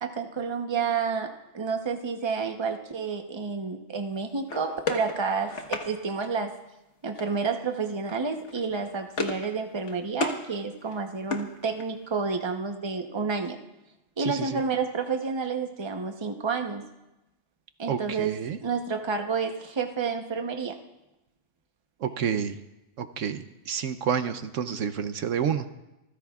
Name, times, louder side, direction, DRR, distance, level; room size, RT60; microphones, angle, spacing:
voice 1, 0.0-6.5 7.0-13.6 14.2-16.9 17.8-18.4 18.6-20.8, right 5 dB, 25° right, 4 dB, 0.8 m, -30 dB
sound 1, 4.5-5.9 7.2-7.6 7.9-8.1 8.4-9.5 9.8-10.4 10.8-12.1, left 3 dB, 60° left, 1.6 m, -34 dB
voice 2, 14.2-14.6 17.9-18.6 22.0-22.6 23.0-25.7, right 8 dB, 75° right, 9 dB, 1.0 m, -29 dB
26.5 x 15.0 x 2.4 m, 0.96 s
omnidirectional pair, 1.4 m